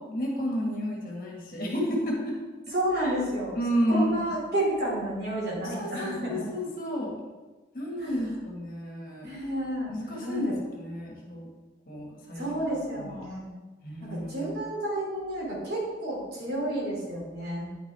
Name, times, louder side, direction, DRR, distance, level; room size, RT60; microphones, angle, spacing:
voice 1, 0.1-2.3 3.0-3.1 3.5-4.2 5.7-7.1 7.7-9.3 9.9-11.5 11.9-12.6 13.0-13.2 13.8-14.5, equal, 50° left, -2 dB, 1.7 m, -31 dB
voice 2, 2.7-3.5 3.9-6.5 8.0-8.1 9.2-9.9 10.2-10.5 12.4-13.5 14.0-17.7, right 1 dB, 55° right, -5 dB, 2.7 m, -30 dB
9.6 x 6.0 x 3.4 m, 1.2 s
head